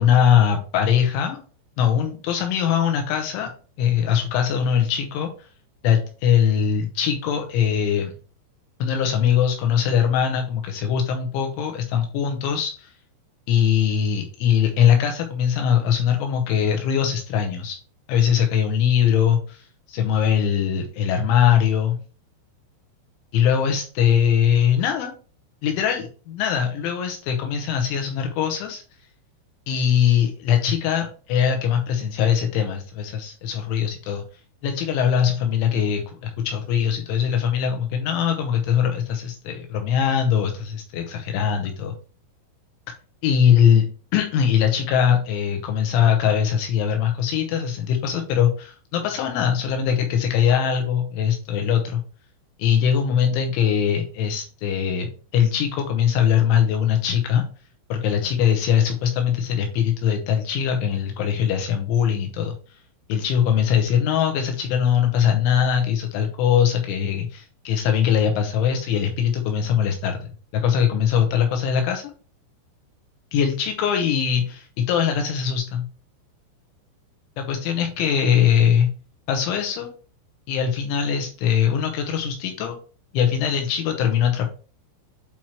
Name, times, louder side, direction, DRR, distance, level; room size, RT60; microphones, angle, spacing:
voice 1, 0.0-1.4 1.8-3.5 3.8-5.5 5.8-8.1 8.8-12.9 13.5-17.8 18.1-22.0 23.3-25.1 25.6-28.8 29.7-34.2 34.6-42.0 43.2-43.8 44.1-52.0 52.6-55.1 55.3-57.4 57.9-62.5 63.1-72.0 73.3-75.8 77.4-78.9 79.3-79.9 80.5-82.8 83.1-84.5, left 8 dB, 80° left, 4 dB, 3.0 m, -21 dB
8.6 x 4.4 x 3.0 m, 0.38 s
omnidirectional pair, 5.7 m